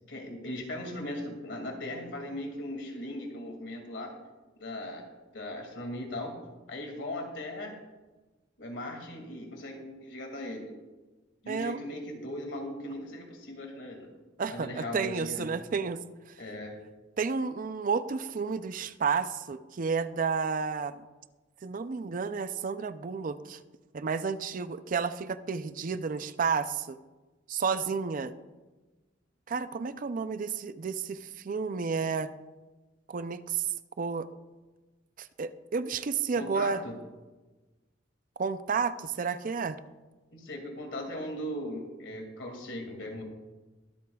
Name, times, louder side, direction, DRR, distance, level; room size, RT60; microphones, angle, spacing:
voice 1, 0.1-4.1 4.6-5.0 5.3-6.4 6.7-7.8 8.6-10.7 11.4-14.1 14.5-15.5 16.4-16.7 36.4-36.9 40.3-43.2, left 1 dB, 70° left, 2 dB, 2.3 m, -38 dB
voice 2, 11.5-11.8 14.4-16.3 17.2-21.0 21.6-23.6 23.9-27.0 27.5-28.3 29.5-32.3 33.1-33.7 34.0-34.3 35.2-36.8 38.4-39.8, right 5 dB, 45° right, 12 dB, 0.4 m, -31 dB
22.5 x 8.3 x 2.3 m, 1.2 s
head